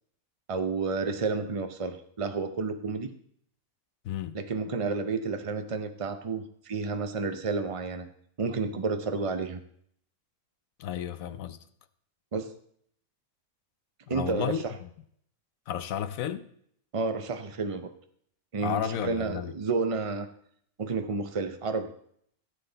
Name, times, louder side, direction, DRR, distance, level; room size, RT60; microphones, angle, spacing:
voice 1, 0.5-3.1 4.3-8.1 8.4-9.6 12.3-12.6 14.1-14.7 16.9-17.9 18.5-20.3 20.8-21.9, right 4 dB, 60° right, 0.3 m, -31 dB
voice 2, 4.0-4.4 10.8-11.6 14.1-14.6 15.7-16.5 18.6-19.5, left 9 dB, 70° left, 1.0 m, -32 dB
15.5 x 7.6 x 3.9 m
omnidirectional pair, 1.6 m